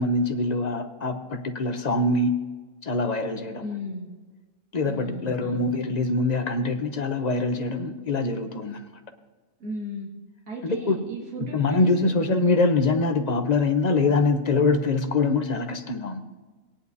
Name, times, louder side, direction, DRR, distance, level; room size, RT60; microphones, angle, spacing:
voice 1, 0.0-2.4 2.8-3.6 4.7-8.8 10.6-11.0 11.4-16.2, left 3 dB, 40° left, 7 dB, 0.8 m, -24 dB
voice 2, 3.6-4.1 4.8-5.7 9.6-10.1 10.5-12.1, left 1 dB, 90° right, -4 dB, 2.4 m, -36 dB
18.0 x 10.0 x 2.7 m, 1.3 s
omnidirectional pair, 1.4 m